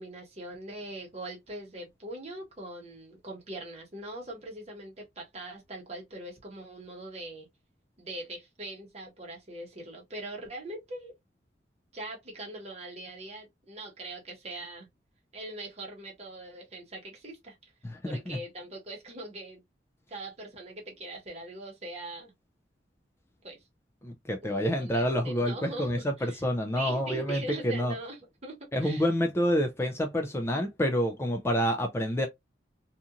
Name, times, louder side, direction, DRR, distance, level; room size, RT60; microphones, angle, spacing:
voice 1, 0.0-7.5 8.0-11.1 11.9-14.9 15.3-17.6 18.1-19.6 20.1-22.3 23.4-23.6 24.4-29.0, right 1 dB, 35° right, 1.1 m, -42 dB
voice 2, 17.8-18.4 24.0-27.9 28.7-32.3, equal, 15° left, 0.3 m, -28 dB
2.8 x 2.4 x 2.4 m
head